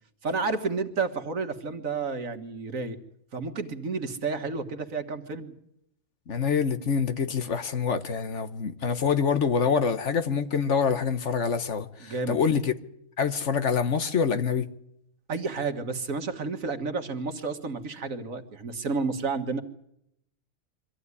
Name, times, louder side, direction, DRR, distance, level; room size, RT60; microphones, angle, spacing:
voice 1, 0.2-3.0 3.3-5.5 12.0-12.4 15.3-19.6, right 4 dB, 70° right, 2.1 m, -31 dB
voice 2, 6.3-12.7 13.2-14.7, left 6 dB, 60° left, 1.4 m, -26 dB
24.5 x 15.0 x 9.8 m
omnidirectional pair, 1.4 m